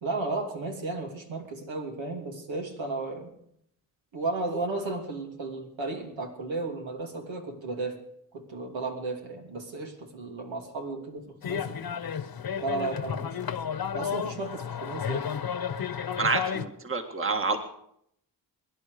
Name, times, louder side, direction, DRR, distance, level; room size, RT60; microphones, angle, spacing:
voice 1, 0.0-3.3 4.1-8.0 8.3-11.8 12.6-13.4 13.9-15.3, right 3 dB, 85° right, 2 dB, 3.0 m, -34 dB
sound 1, 11.4-16.6, left 7 dB, 55° left, 1.1 m, -32 dB
voice 2, 16.2-17.6, right 3 dB, 30° right, 5 dB, 1.8 m, -28 dB
24.0 x 11.0 x 5.1 m, 0.72 s
cardioid pair, 85°, 44 cm